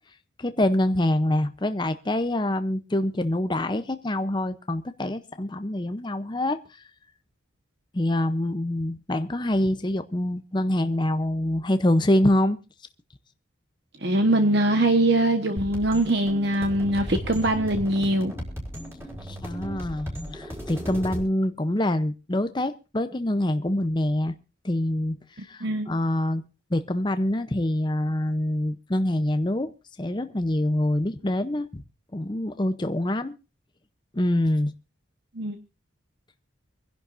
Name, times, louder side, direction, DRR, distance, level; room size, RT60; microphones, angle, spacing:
voice 1, 0.4-6.8 7.9-12.6 19.3-24.3 24.6-26.4 26.7-29.7 30.0-31.8 32.1-33.3 34.1-34.7, left 1 dB, 25° left, 0.7 m, -25 dB
voice 2, 14.0-18.3 25.6-25.9 35.4-35.6, right 1 dB, 55° right, 1.3 m, -22 dB
sound 1, 15.6-21.2, equal, 10° right, 4.7 m, -36 dB
25.5 x 11.0 x 2.6 m
head